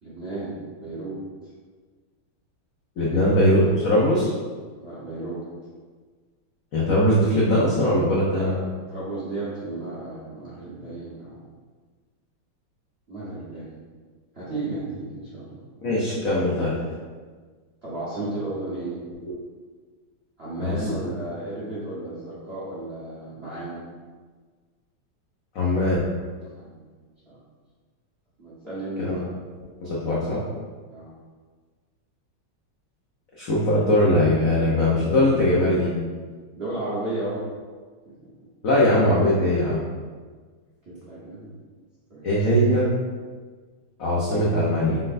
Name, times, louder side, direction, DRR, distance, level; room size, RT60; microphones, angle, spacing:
voice 1, 0.0-1.2 3.1-3.4 4.7-5.4 8.3-8.5 8.9-11.4 13.1-13.7 14.3-15.6 17.8-19.0 20.4-23.8 26.6-26.9 27.3-27.4 28.4-29.2 30.9-31.1 36.5-37.4 38.0-38.1 40.8-41.5 42.1-42.5, right 2 dB, 45° right, -9 dB, 0.9 m, -33 dB
voice 2, 3.0-4.3 6.7-8.6 15.8-16.8 20.6-20.9 25.5-26.0 29.0-29.2 29.8-30.4 33.4-35.9 38.6-39.8 42.2-42.9 44.0-45.0, left 1 dB, 75° left, -6 dB, 0.7 m, -20 dB
5.2 x 3.9 x 2.5 m, 1.5 s
omnidirectional pair, 2.4 m